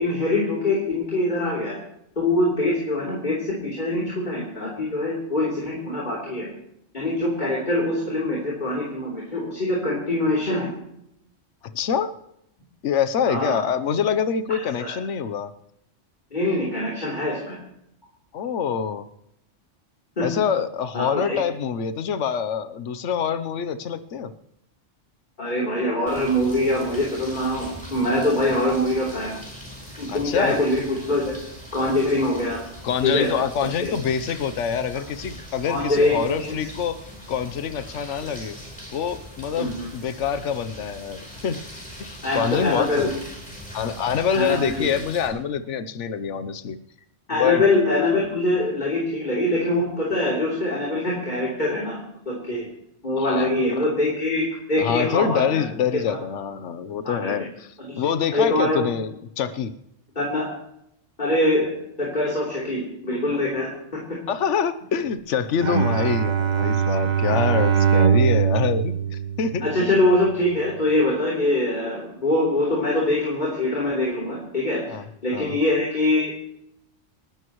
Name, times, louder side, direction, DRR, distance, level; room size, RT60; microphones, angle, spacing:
voice 1, 0.0-1.8 2.2-6.5 6.9-10.7 13.3-13.6 14.5-15.0 16.3-17.6 20.2-20.3 20.9-21.4 25.4-29.4 30.0-31.4 31.7-32.6 33.0-33.3 33.6-33.9 35.7-36.6 39.6-39.9 42.2-43.1 44.3-44.9 47.3-52.0 52.3-52.6 53.0-55.6 56.1-56.2 57.0-57.4 57.8-58.0 58.3-58.9 60.2-60.5 61.2-61.7 62.0-64.0 65.8-66.1 69.6-74.8 75.2-76.3, left 1 dB, 40° left, -5 dB, 3.6 m, -23 dB
voice 2, 11.6-12.1 12.8-15.5 18.3-19.1 20.2-24.3 30.1-30.6 32.8-37.0 37.3-38.6 38.9-41.6 42.0-43.2 43.7-46.8 47.3-47.6 53.2-53.6 54.8-59.7 64.3-69.0 69.4-70.0 74.9-75.0 75.3-75.5, left 7 dB, 70° left, 11 dB, 1.2 m, -25 dB
sound 1, 26.1-45.3, equal, 5° left, 4.8 m, -41 dB
Bowed string instrument, 65.6-70.0, right 7 dB, 40° right, 0.9 m, -21 dB
29.0 x 12.5 x 3.1 m, 0.80 s
omnidirectional pair, 1.3 m